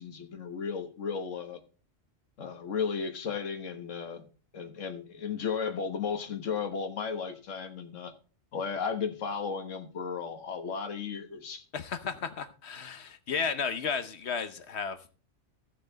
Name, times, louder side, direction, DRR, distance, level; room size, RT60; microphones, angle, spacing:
voice 1, 0.0-1.6 2.4-4.3 4.5-8.1 8.5-11.6, left 6 dB, 85° left, 1.6 m, -34 dB
voice 2, 11.7-15.2, left 6 dB, 65° left, 1.1 m, -33 dB
15.5 x 6.4 x 3.9 m
omnidirectional pair, 1.3 m